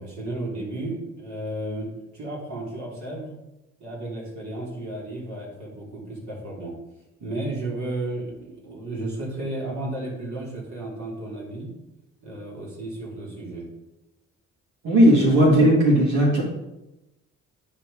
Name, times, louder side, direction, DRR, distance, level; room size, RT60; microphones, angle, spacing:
voice 1, 0.0-3.3 3.8-6.7 7.2-11.7 12.2-13.7, right 2 dB, 65° right, -3 dB, 3.6 m, -33 dB
voice 2, 14.8-16.4, equal, 85° right, -2 dB, 3.1 m, -16 dB
9.9 x 5.0 x 5.1 m, 0.95 s
cardioid pair, 90°, 30 cm